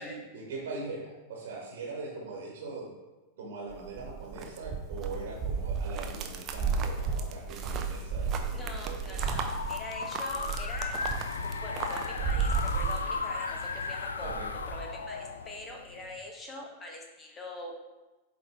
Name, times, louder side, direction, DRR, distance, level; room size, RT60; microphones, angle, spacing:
voice 1, 0.0-2.9 3.4-9.2 14.2-14.5, right 3 dB, 55° right, -2 dB, 1.4 m, -41 dB
sound 1, 3.7-13.6 13.9-14.9, right 5 dB, 35° right, 0.7 m, -33 dB
voice 2, 8.5-10.9 11.4-14.3 14.7-17.8, left 1 dB, 20° left, 0 dB, 1.2 m, -43 dB
sound 2, 9.0-16.1, left 5 dB, 70° left, 0.3 m, -36 dB
8.2 x 3.7 x 3.5 m, 1.1 s
figure-of-eight pair, 90°, 0 cm